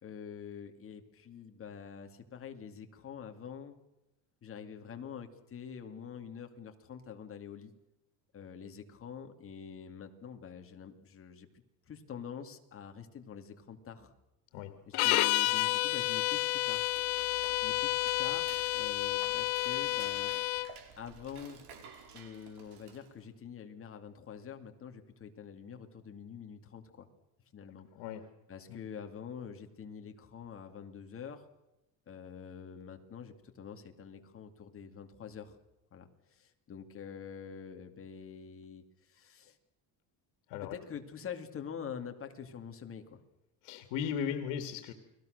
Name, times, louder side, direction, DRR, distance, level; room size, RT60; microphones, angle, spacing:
voice 1, 0.0-3.8 4.4-7.7 8.3-11.5 11.9-14.1 14.9-16.9 17.6-20.3 21.0-21.6 22.1-27.1 27.5-27.9 28.5-31.5 32.1-35.6 35.9-39.6 40.7-43.2, left 7 dB, 30° left, 5 dB, 2.4 m, -46 dB
sound 1, 14.9-20.7, left 19 dB, 65° left, 1.0 m, -30 dB
Dishes pots and pans / Cutlery silverware, 16.4-23.3, right 7 dB, 65° right, 4.7 m, -52 dB
voice 2, 43.6-44.9, left 8 dB, 90° left, 7 dB, 2.1 m, -36 dB
29.5 x 21.0 x 6.6 m, 0.92 s
cardioid pair, 150°, 43 cm